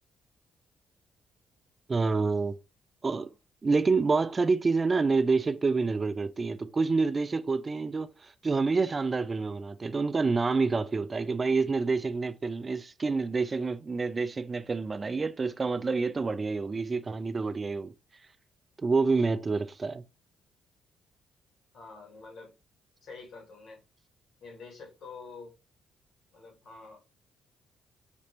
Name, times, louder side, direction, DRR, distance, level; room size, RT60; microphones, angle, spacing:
voice 1, 1.9-2.6 3.0-3.3 3.6-17.9 18.8-20.0, right 4 dB, 30° right, 0.3 m, -28 dB
voice 2, 21.7-22.6 23.0-23.8 24.4-25.6 26.3-27.0, left 4 dB, 70° left, 1.9 m, -47 dB
5.0 x 2.8 x 3.3 m
cardioid pair, 90°, 0 cm